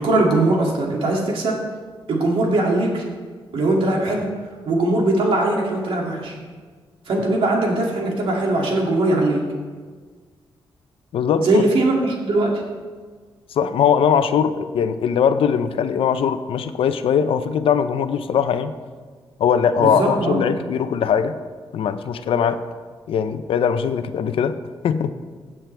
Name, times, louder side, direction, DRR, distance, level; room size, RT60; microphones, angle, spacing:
voice 1, 0.0-1.6 2.1-3.0 3.5-4.3 4.7-6.3 7.1-9.4 11.4-12.5 19.8-20.4, right 2 dB, 75° right, -1 dB, 2.6 m, -20 dB
voice 2, 11.1-11.6 13.5-18.7 19.4-21.4 21.7-22.6 23.1-24.5 24.8-25.1, left 7 dB, 80° left, 11 dB, 0.6 m, -20 dB
16.5 x 7.5 x 3.4 m, 1.5 s
cardioid pair, 95°, 9 cm